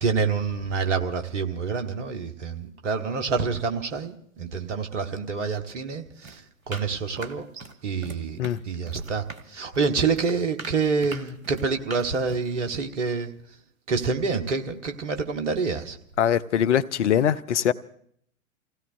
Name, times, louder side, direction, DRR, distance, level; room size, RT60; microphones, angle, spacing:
voice 1, 0.0-8.4 8.6-13.3 13.9-16.0, right 5 dB, 60° right, 1.4 m, -27 dB
sound 1, 6.2-7.7 8.0-8.6 8.9-12.5, right 3 dB, 80° right, 1.2 m, -41 dB
voice 2, 16.2-17.7, left 9 dB, 60° left, 0.6 m, -22 dB
29.5 x 16.5 x 2.6 m
figure-of-eight pair, 100°, 41 cm